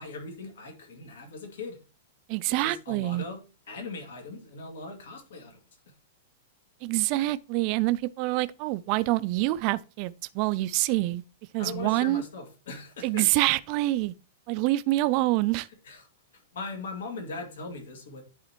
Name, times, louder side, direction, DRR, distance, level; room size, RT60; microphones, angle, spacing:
voice 1, 0.0-1.8 2.6-3.4 3.7-5.5 11.6-13.3 15.8-16.0 16.5-18.2, left 3 dB, 80° left, 2.4 m, -39 dB
voice 2, 2.3-3.2 6.8-11.2 11.5-12.2 13.0-14.1 14.5-15.7, right 18 dB, 30° right, 0.3 m, -26 dB
10.5 x 4.1 x 3.0 m
supercardioid pair, 175°, 0 cm